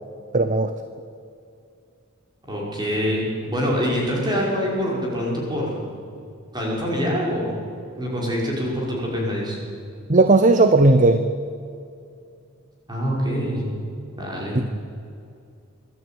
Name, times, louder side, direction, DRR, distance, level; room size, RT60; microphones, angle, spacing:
voice 1, 0.3-0.7 10.1-11.3 14.5-14.6, right 2 dB, 35° right, 10 dB, 0.8 m, -16 dB
voice 2, 2.5-5.9 6.5-7.6 8.0-9.6 12.9-13.7 14.2-14.6, equal, 20° right, -3 dB, 5.8 m, -25 dB
23.5 x 12.5 x 9.3 m, 2.5 s
head